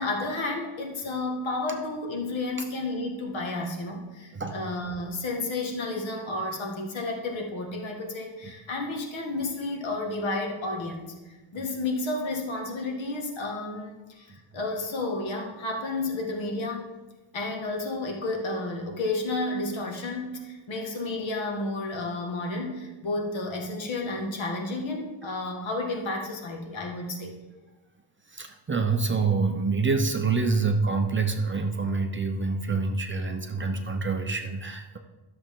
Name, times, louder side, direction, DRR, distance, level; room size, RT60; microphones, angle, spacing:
voice 1, 0.0-16.9 17.3-27.3, left 2 dB, 65° left, 1 dB, 1.9 m, -31 dB
voice 2, 28.3-35.0, right 4 dB, 25° right, 5 dB, 0.7 m, -26 dB
13.0 x 6.9 x 3.7 m, 1.1 s
cardioid pair, 145°, 50 cm